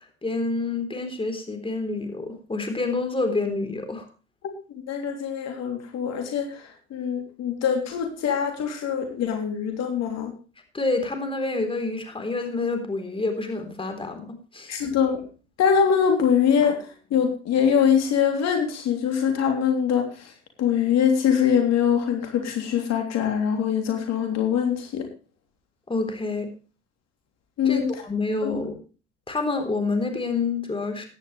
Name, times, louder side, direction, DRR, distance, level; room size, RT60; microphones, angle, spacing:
voice 1, 0.2-4.0 10.7-14.7 25.9-26.5 27.6-28.8 29.3-31.0, left 3 dB, 15° left, 6 dB, 3.8 m, -28 dB
voice 2, 4.8-10.3 14.7-15.2 15.6-20.3 20.6-25.1 27.6-28.0 28.4-28.6, left 7 dB, 55° left, 4 dB, 3.3 m, -23 dB
15.5 x 11.0 x 3.3 m, 0.35 s
hypercardioid pair, 75°, 31 cm